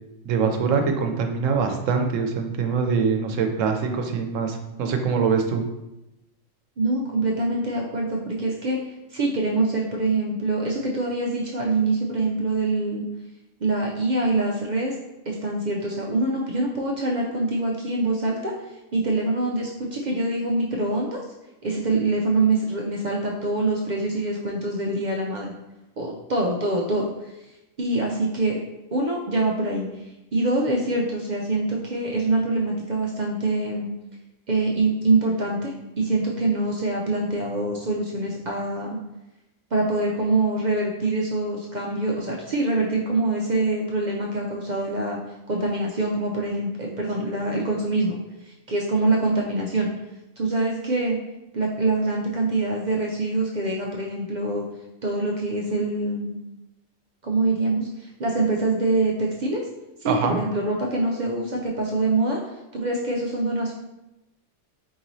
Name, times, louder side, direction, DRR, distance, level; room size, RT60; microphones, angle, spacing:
voice 1, 0.2-5.6 60.1-60.4, right 5 dB, 75° right, 5 dB, 0.9 m, -23 dB
voice 2, 6.8-8.8 9.1-13.0 13.6-15.0 15.3-18.5 18.9-21.2 21.6-25.5 26.0-27.1 27.8-28.6 28.9-29.9 30.3-33.9 34.5-39.0 39.7-45.2 45.5-48.2 48.7-49.9 50.4-51.2 51.5-54.6 55.0-56.4 57.2-57.9 58.2-59.6 60.0-62.4 62.7-63.7, right 2 dB, 60° right, -2 dB, 0.4 m, -24 dB
4.7 x 3.0 x 2.6 m, 0.94 s
omnidirectional pair, 1.3 m